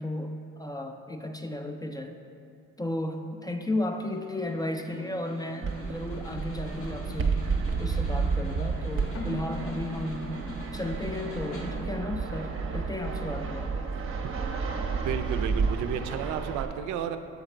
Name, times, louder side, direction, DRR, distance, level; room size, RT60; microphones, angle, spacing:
voice 1, 0.0-2.2 2.8-7.4 7.8-10.4 10.7-13.7, left 1 dB, 15° left, 5 dB, 0.4 m, -34 dB
Snare drum, 4.2-12.1, left 1 dB, 85° left, 1.2 m, -43 dB
Fixed-wing aircraft airplane, 5.6-16.7, right 5 dB, 45° right, 0.7 m, -31 dB
Keyboard (musical), 9.1-12.8, right 1 dB, 50° left, 0.9 m, -43 dB
voice 2, 15.0-17.2, right 8 dB, 75° right, 9 dB, 0.5 m, -32 dB
7.0 x 3.9 x 4.3 m, 2.4 s
cardioid pair, 85°, 30 cm